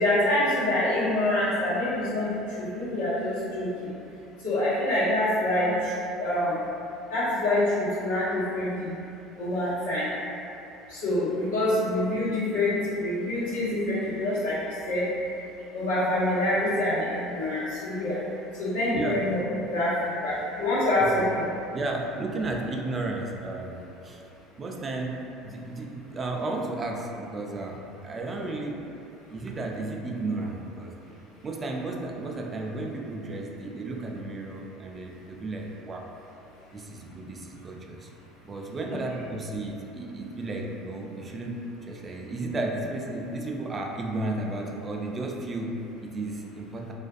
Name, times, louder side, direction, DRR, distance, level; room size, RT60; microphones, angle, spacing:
voice 1, 0.0-2.3 2.6-3.9 4.4-6.6 7.1-8.9 9.4-10.1 10.9-15.0 15.7-18.2 18.6-19.4 19.7-21.4, left 1 dB, 90° left, -11 dB, 1.0 m, -26 dB
voice 2, 21.7-23.8 24.0-24.2 24.6-28.8 29.3-30.9 31.4-36.1 36.7-38.1 38.4-46.9, right 2 dB, 30° right, 0 dB, 0.3 m, -33 dB
2.5 x 2.2 x 2.4 m, 2.8 s
hypercardioid pair, 80°, 0 cm